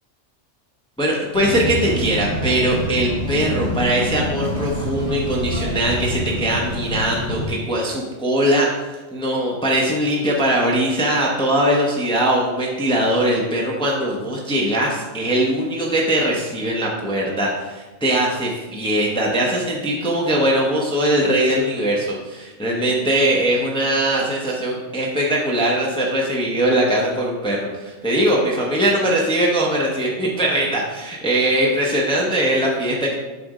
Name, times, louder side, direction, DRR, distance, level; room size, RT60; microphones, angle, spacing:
voice 1, 1.0-33.2, right 1 dB, 5° left, -3 dB, 0.9 m, -21 dB
sound 1, 1.3-7.5, equal, 60° left, 2.1 m, -26 dB
7.5 x 3.5 x 5.0 m, 1.2 s
omnidirectional pair, 1.3 m